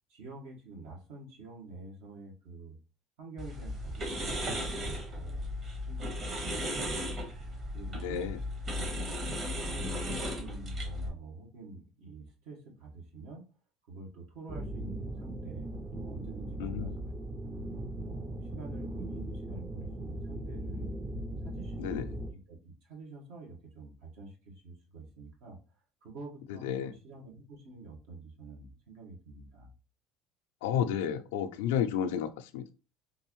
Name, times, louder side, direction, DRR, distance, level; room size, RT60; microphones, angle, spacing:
voice 1, 0.1-2.8 3.2-5.5 5.9-7.2 7.7-8.3 8.6-8.9 9.7-13.4 13.9-15.7 15.9-17.1 18.0-21.0 21.4-25.6 26.0-29.7, right 3 dB, 75° right, 1.4 m, -47 dB
sound 1, 3.4-11.1, equal, 45° right, 1.4 m, -36 dB
voice 2, 8.0-8.4 16.6-17.0 21.8-22.1 26.6-26.9 30.6-32.7, left 9 dB, 85° left, 0.4 m, -31 dB
sound 2, 14.5-22.3, right 1 dB, 25° right, 0.5 m, -39 dB
3.7 x 2.6 x 3.0 m
supercardioid pair, 85°, 0 cm